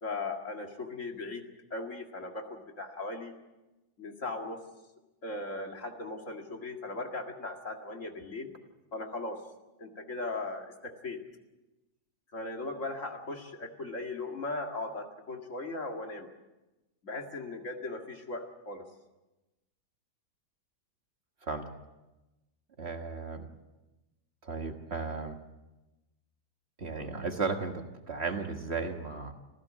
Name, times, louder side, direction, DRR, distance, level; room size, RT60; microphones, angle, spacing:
voice 1, 0.0-1.4 1.7-3.3 4.0-4.6 5.2-8.5 8.9-9.4 9.8-11.2 12.3-16.3 17.0-18.8, left 2 dB, 50° left, 3 dB, 2.4 m, -38 dB
voice 2, 22.8-23.5 24.4-25.4 26.8-29.3, right 4 dB, 40° right, 5 dB, 1.6 m, -35 dB
27.0 x 15.5 x 7.4 m, 1.1 s
omnidirectional pair, 1.7 m